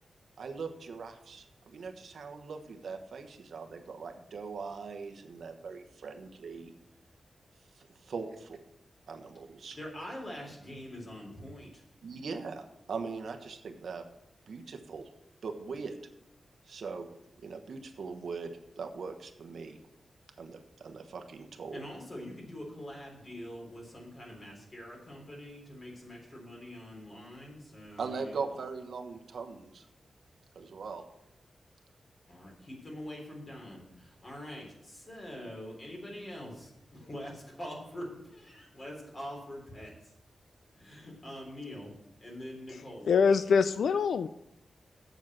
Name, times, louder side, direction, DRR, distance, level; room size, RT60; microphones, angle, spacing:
voice 1, 0.4-6.7 7.8-8.6 9.1-9.8 12.0-14.0 14.5-15.1 15.4-16.0 16.7-17.1 17.4-19.8 20.4-21.8 28.0-29.9 30.5-31.0, right 4 dB, 75° right, 6 dB, 1.2 m, -40 dB
voice 2, 9.7-11.8 21.7-28.3 32.3-39.9 40.7-41.9 42.2-43.1, equal, 30° left, -1 dB, 3.6 m, -44 dB
voice 3, 43.1-44.3, left 6 dB, 90° left, 13 dB, 0.4 m, -24 dB
7.9 x 7.3 x 7.4 m, 0.84 s
wide cardioid pair, 130°, 0 cm